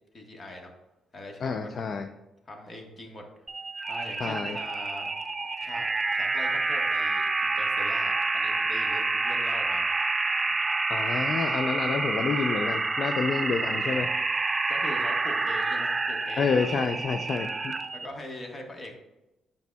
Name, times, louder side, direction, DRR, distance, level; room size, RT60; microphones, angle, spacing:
voice 1, 0.1-0.7 1.1-2.0 2.5-3.2 3.9-5.1 5.6-9.9 12.0-12.2 13.6-14.2 14.7-16.8 17.9-18.9, left 1 dB, 35° left, 2 dB, 1.3 m, -42 dB
voice 2, 1.4-2.1 4.2-4.6 10.9-14.1 16.4-17.8, left 5 dB, 55° left, 7 dB, 0.4 m, -28 dB
sound 1, 3.5-18.1, right 3 dB, 25° right, 0.4 m, -28 dB
8.0 x 5.2 x 2.3 m, 1.0 s
cardioid pair, 90°, 0 cm